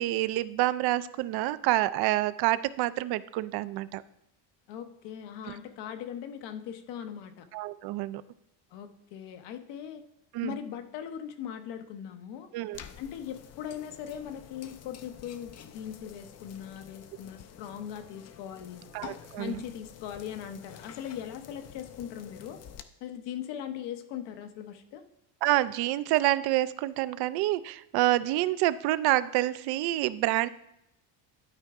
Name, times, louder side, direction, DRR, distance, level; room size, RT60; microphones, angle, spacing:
voice 1, 0.0-4.0 5.5-5.6 7.5-8.2 10.3-10.5 12.5-12.8 18.9-19.5 25.4-30.5, right 16 dB, 60° right, 16 dB, 0.5 m, -27 dB
voice 2, 4.7-7.5 8.7-10.0 10.4-12.5 13.0-18.9 19.4-22.6 23.0-25.0, left 9 dB, 70° left, 8 dB, 1.0 m, -40 dB
sound 1, 12.7-22.8, left 9 dB, 35° left, 0.5 m, -49 dB
12.0 x 4.7 x 3.5 m, 0.82 s
cardioid pair, 125°, 44 cm